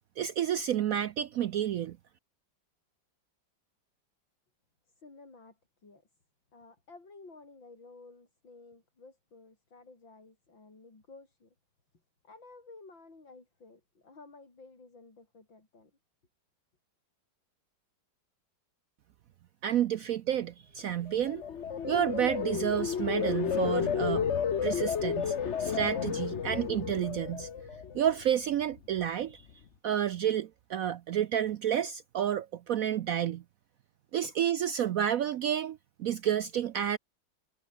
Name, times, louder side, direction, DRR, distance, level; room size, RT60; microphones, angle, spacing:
voice 1, 0.2-2.0 19.6-21.4 21.8-24.3 24.6-27.5 27.9-29.4 29.8-33.4 34.1-37.0, right 10 dB, 70° right, 0.8 m, -30 dB
voice 2, 4.9-6.0 6.5-11.5 12.2-15.9 20.0-20.1 34.2-34.4, left 3 dB, 80° left, 6.0 m, -53 dB
sound 1, 21.0-28.2 28.6-29.0, left 7 dB, 45° left, 1.2 m, -32 dB
omnidirectional pair, 2.1 m